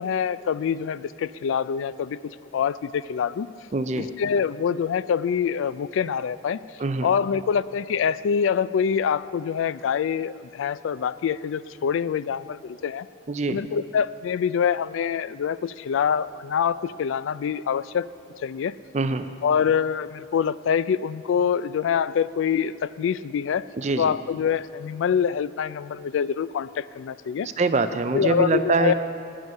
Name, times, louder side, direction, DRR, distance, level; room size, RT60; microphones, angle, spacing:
voice 1, 0.0-3.5 4.0-6.6 7.0-13.1 13.5-18.1 18.4-18.7 19.4-23.6 24.0-27.5 28.1-28.9, left 7 dB, 85° left, 17 dB, 0.3 m, -25 dB
voice 2, 3.7-4.1 6.8-7.1 13.3-13.6 18.9-19.3 23.7-24.2 27.4-28.9, right 3 dB, 35° right, 10 dB, 0.4 m, -24 dB
18.5 x 6.3 x 5.4 m, 2.3 s
head